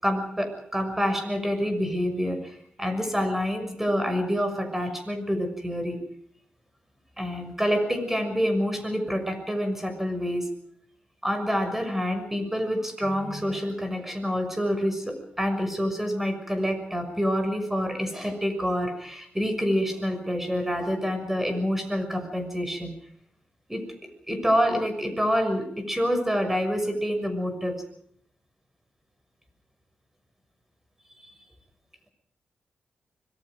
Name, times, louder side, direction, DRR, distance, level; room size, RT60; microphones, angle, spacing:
voice 1, 0.0-6.0 7.2-10.5 11.2-22.9 23.7-27.8, equal, 10° right, 7 dB, 6.4 m, -27 dB
25.5 x 23.0 x 5.2 m, 0.65 s
cardioid pair, 90°, 3 cm